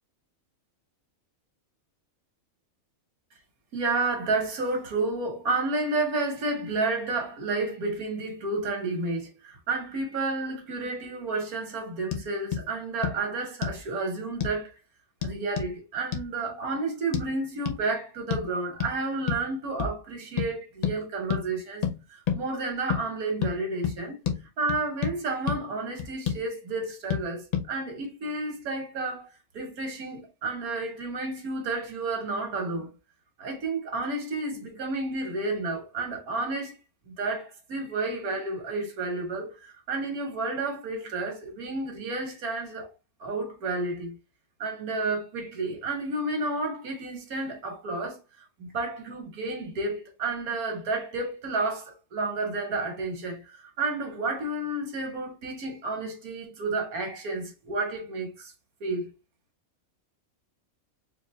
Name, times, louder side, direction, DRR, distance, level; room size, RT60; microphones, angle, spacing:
voice 1, 3.7-14.8 15.2-24.2 24.6-29.3 29.5-32.9 33.4-36.8 37.1-42.9 43.2-44.2 44.6-48.2 48.6-58.5 58.8-59.1, right 3 dB, 85° right, 1.7 m, -31 dB
sound 1, 12.1-12.2 12.5-12.6 13.0-13.2 13.6-13.8 14.4-14.6 15.2-15.7 16.1-16.3 17.1-17.3 17.7-17.8 18.3-18.5 18.8-18.9 19.3-19.5 19.8-20.0 20.4-20.5 20.8-21.0 21.3-21.4 21.8-22.0 22.3-22.4 22.9-23.0 23.4-23.6 23.8-24.0 24.3-24.4 24.7-25.2 25.5-25.6 26.0-26.4 27.1-27.2 27.5-27.7, left 8 dB, 55° left, 0.4 m, -28 dB
4.5 x 2.5 x 3.1 m
omnidirectional pair, 1.5 m